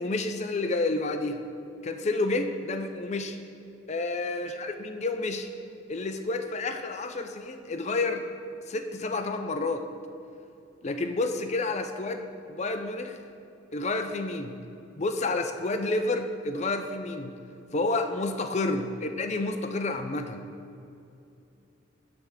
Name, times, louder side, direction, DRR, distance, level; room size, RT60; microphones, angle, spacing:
voice 1, 0.0-1.4 1.8-3.4 3.9-5.5 5.9-8.3 8.7-9.9 10.8-13.2 13.7-14.6 15.0-17.3 17.7-20.4, left 2 dB, 35° left, 7 dB, 0.4 m, -30 dB
10.5 x 3.5 x 7.1 m, 2.7 s
head